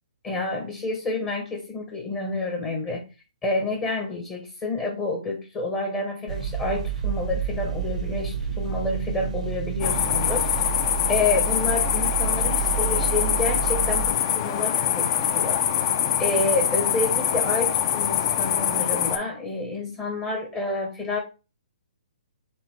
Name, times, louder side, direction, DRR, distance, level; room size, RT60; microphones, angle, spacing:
voice 1, 0.2-3.0 3.4-10.7 11.1-15.6 16.2-21.2, left 2 dB, 20° left, 2 dB, 0.9 m, -29 dB
sound 1, 6.3-14.1, right 9 dB, 70° right, 0.6 m, -29 dB
sound 2, 9.8-19.2, left 9 dB, 40° left, 0.5 m, -24 dB
4.4 x 3.2 x 3.1 m, 0.31 s
figure-of-eight pair, 130°, 4 cm